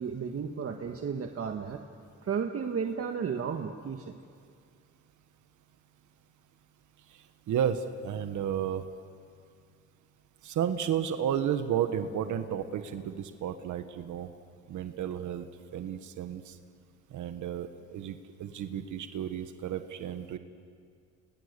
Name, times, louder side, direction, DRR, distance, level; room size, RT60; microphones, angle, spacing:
voice 1, 0.0-1.8 2.2-4.2, right 6 dB, 50° right, 4 dB, 1.6 m, -33 dB
voice 2, 7.1-8.9 10.4-14.3 14.7-15.4 15.7-16.5 17.1-20.4, right 9 dB, 75° right, 9 dB, 1.4 m, -32 dB
29.5 x 26.5 x 6.9 m, 2.2 s
cardioid pair, 90°, 30 cm